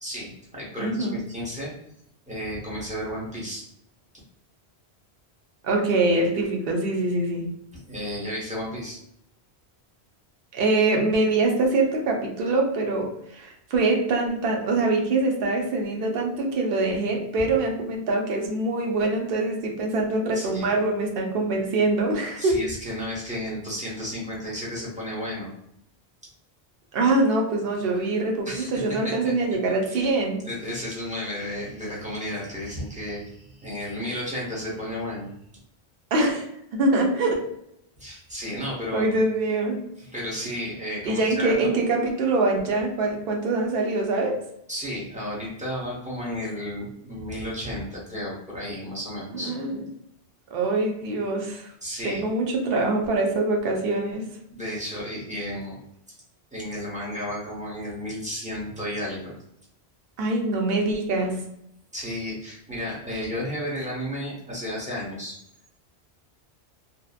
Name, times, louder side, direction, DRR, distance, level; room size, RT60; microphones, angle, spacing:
voice 1, 0.0-1.7 2.3-3.7 7.7-9.0 20.3-20.7 22.4-25.5 28.5-29.3 29.9-30.1 30.4-35.3 38.0-39.1 40.0-41.7 44.7-49.5 51.8-52.2 54.5-55.8 56.5-59.3 61.9-65.4, equal, 10° right, -6 dB, 0.7 m, -33 dB
voice 2, 0.8-1.2 5.6-7.5 10.5-22.6 26.9-30.4 36.1-36.4 36.7-37.4 38.9-39.8 41.1-44.4 49.3-49.8 50.5-51.7 52.0-54.3 60.2-61.4, right 2 dB, 65° right, 1 dB, 0.7 m, -24 dB
2.7 x 2.0 x 2.3 m, 0.76 s
omnidirectional pair, 1.1 m